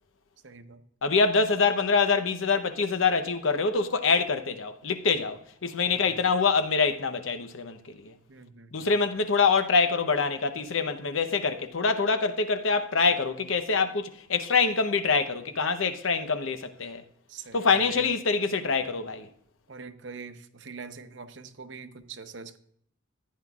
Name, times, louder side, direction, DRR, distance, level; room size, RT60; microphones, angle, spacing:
voice 1, 0.4-0.8 5.8-6.2 8.3-8.9 17.3-18.1 19.7-22.6, right 4 dB, 65° right, 0.8 m, -44 dB
voice 2, 1.0-8.1 8.7-17.0 17.5-19.3, left 4 dB, 85° left, 0.8 m, -25 dB
15.0 x 9.5 x 2.4 m
head